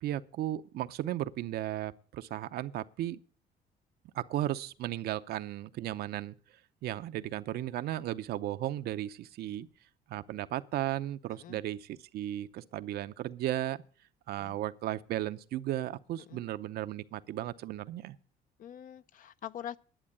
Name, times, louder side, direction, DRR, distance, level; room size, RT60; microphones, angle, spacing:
voice 1, 0.0-3.2 4.1-6.4 6.8-9.7 10.1-13.8 14.3-18.2, right 13 dB, 70° right, 0.7 m, -35 dB
voice 2, 11.3-11.6 14.4-14.6 16.2-16.4 18.6-19.8, left 10 dB, 50° left, 0.6 m, -44 dB
11.0 x 7.5 x 8.7 m
cardioid pair, 110°, 17 cm